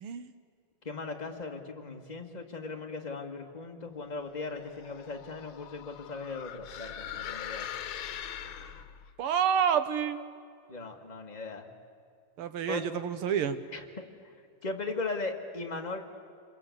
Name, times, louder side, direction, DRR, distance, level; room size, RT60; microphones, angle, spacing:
voice 1, 0.9-7.7 10.7-11.7 12.7-12.8 13.7-14.0 14.6-16.0, left 3 dB, 20° left, 3 dB, 1.7 m, -38 dB
sound 1, 4.6-9.1, left 9 dB, 75° left, 1.7 m, -41 dB
voice 2, 9.2-10.2 12.4-13.6, right 8 dB, 90° right, 11 dB, 2.0 m, -28 dB
26.5 x 22.0 x 8.4 m, 2.3 s
omnidirectional pair, 2.3 m